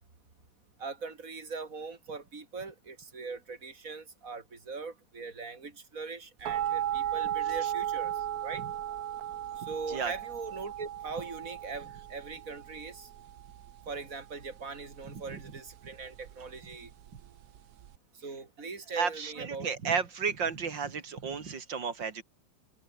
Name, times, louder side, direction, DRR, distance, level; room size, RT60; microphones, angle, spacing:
voice 1, 0.8-8.6 9.6-13.1 13.9-16.9 18.2-19.7, right 4 dB, 45° right, 3.9 m, -41 dB
sound 1, 6.4-18.0, right 11 dB, 60° right, 1.2 m, -36 dB
voice 2, 9.6-10.1 15.1-15.4 18.9-22.2, right 5 dB, 80° right, 3.1 m, -33 dB
open air
omnidirectional pair, 2.0 m